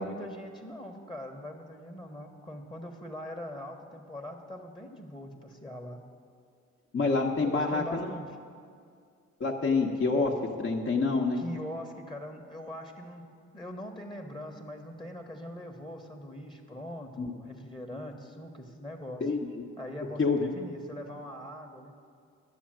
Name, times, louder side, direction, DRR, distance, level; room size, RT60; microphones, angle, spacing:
voice 1, 0.0-6.0 7.4-8.2 11.4-13.2 13.5-19.3 19.8-21.9, equal, 15° left, 3 dB, 1.3 m, -42 dB
voice 2, 6.9-8.1 9.4-11.4 17.2-17.3 19.2-19.4 20.2-20.5, left 3 dB, 40° left, -1 dB, 1.2 m, -27 dB
11.5 x 7.1 x 9.0 m, 2.2 s
cardioid pair, 90°, 30 cm